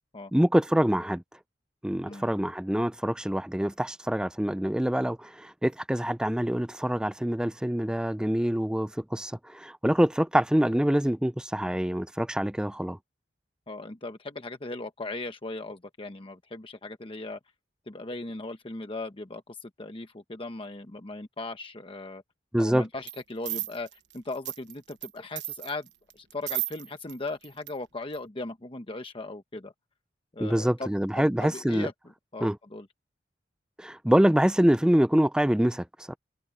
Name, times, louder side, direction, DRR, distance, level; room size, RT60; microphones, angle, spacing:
voice 1, 0.3-1.2 1.8-13.0 22.5-22.8 30.4-31.9 32.4-32.6 33.8-35.9, equal, 5° right, 0.4 m, -25 dB
voice 2, 13.7-17.4 17.9-22.2 22.6-25.9 26.1-29.7 30.3-31.9 32.3-32.9, left 2 dB, 30° left, 1.0 m, -38 dB
sound 1, 23.1-23.2 23.5-25.1 25.4-27.1 27.4-27.7 28.1-28.2, right 15 dB, 75° right, 1.2 m, -34 dB
head